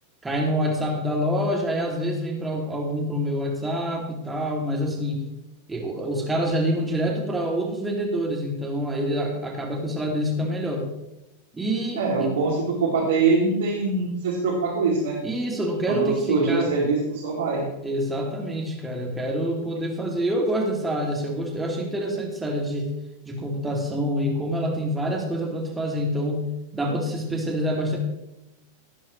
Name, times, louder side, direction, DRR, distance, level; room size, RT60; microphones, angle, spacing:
voice 1, 0.2-5.3 5.7-10.9 11.5-12.3 15.2-16.7 17.8-22.9 23.2-26.5 26.7-28.0, equal, 10° right, 0 dB, 2.7 m, -26 dB
voice 2, 12.0-15.2 15.9-17.7, right 3 dB, 65° right, -5 dB, 3.0 m, -23 dB
17.0 x 9.1 x 3.3 m, 0.92 s
figure-of-eight pair, 90°, 0 cm